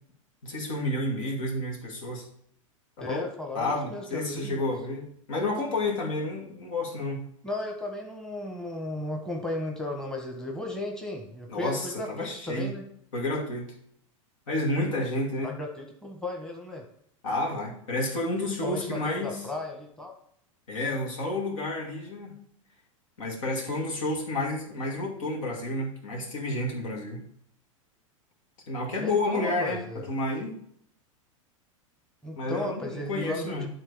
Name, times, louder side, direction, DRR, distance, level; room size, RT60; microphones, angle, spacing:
voice 1, 0.4-2.3 3.0-3.3 3.5-7.2 11.5-12.7 13.1-13.7 14.5-15.5 17.2-19.4 20.7-22.4 23.2-27.2 28.7-30.5 32.4-33.7, left 2 dB, 70° left, 0 dB, 2.3 m, -30 dB
voice 2, 3.0-4.7 7.4-12.8 15.4-16.8 18.6-20.1 28.9-30.1 32.2-33.7, left 2 dB, 5° left, 1 dB, 1.4 m, -35 dB
9.9 x 3.8 x 4.8 m, 0.66 s
hypercardioid pair, 100°, 17 cm